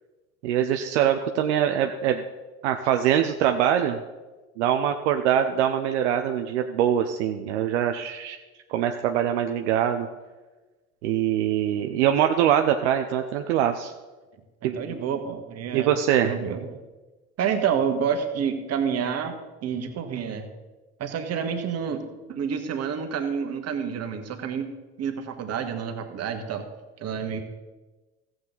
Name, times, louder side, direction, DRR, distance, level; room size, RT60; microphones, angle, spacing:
voice 1, 0.4-2.2 2.6-4.0 4.6-8.4 8.7-10.1 11.0-13.9 14.6-14.9 15.7-16.3, right 10 dB, 75° right, 6 dB, 0.7 m, -23 dB
voice 2, 14.6-15.9 16.2-16.8 17.4-20.5 21.0-22.0 22.3-24.7 25.0-26.6 27.0-27.4, right 7 dB, 45° right, 5 dB, 1.6 m, -28 dB
15.0 x 7.7 x 4.0 m, 1.2 s
hypercardioid pair, 75°, 35 cm